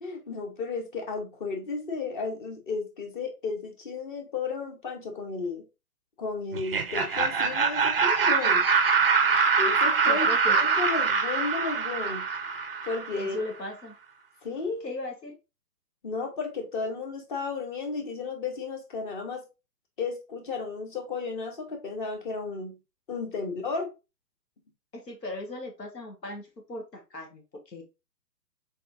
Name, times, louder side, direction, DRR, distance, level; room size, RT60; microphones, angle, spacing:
voice 1, 0.0-5.6 6.2-8.6 9.6-10.3 10.6-12.3 12.8-13.4 14.4-14.9 16.0-19.4 20.0-22.8 23.1-23.9, left 4 dB, 30° left, 0.9 m, -33 dB
Laughter, 6.5-13.3, right 5 dB, 40° right, 0.4 m, -24 dB
voice 2, 10.1-10.6 13.2-13.9 14.8-15.4 24.9-27.8, left 1 dB, 85° left, 1.5 m, -37 dB
4.1 x 3.6 x 2.5 m
figure-of-eight pair, 135°, 48 cm